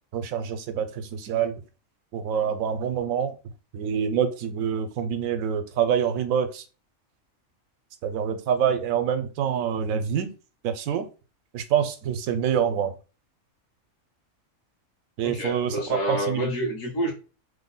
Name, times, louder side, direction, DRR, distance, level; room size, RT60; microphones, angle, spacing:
voice 1, 0.1-1.5 2.1-3.3 3.7-6.6 8.0-10.3 10.6-11.1 11.5-12.9 15.2-15.8 16.1-16.5, right 8 dB, 90° right, 1.0 m, -26 dB
voice 2, 15.2-17.1, equal, 70° left, 1.4 m, -28 dB
3.2 x 2.1 x 3.7 m
omnidirectional pair, 1.4 m